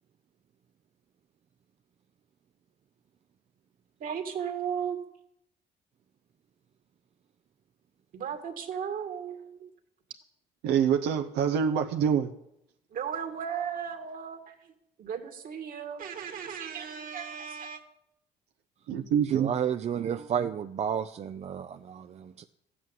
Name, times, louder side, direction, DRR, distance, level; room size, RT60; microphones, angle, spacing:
voice 1, 4.0-5.0 8.1-9.7 12.9-14.7 15.0-17.8, right 7 dB, 55° right, 2.3 m, -35 dB
voice 2, 10.6-12.3 18.9-19.5, right 8 dB, 85° right, 1.0 m, -25 dB
voice 3, 19.3-22.4, right 8 dB, 40° right, 0.6 m, -31 dB
13.5 x 8.5 x 9.4 m
cardioid pair, 110°, 17 cm